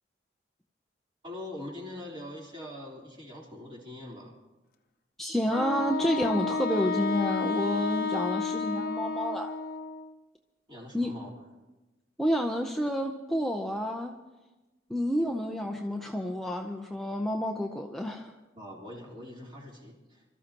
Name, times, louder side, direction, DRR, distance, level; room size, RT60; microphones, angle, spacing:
voice 1, 1.2-4.4 10.7-11.4 18.6-20.2, left 1 dB, 25° right, -4 dB, 3.7 m, -43 dB
voice 2, 5.2-9.5 10.9-11.1 12.2-14.1 14.9-18.3, equal, ahead, 1 dB, 0.7 m, -29 dB
Wind instrument woodwind instrument, 5.5-10.1, left 4 dB, 50° left, 0.9 m, -31 dB
27.0 x 13.5 x 3.0 m, 1.1 s
head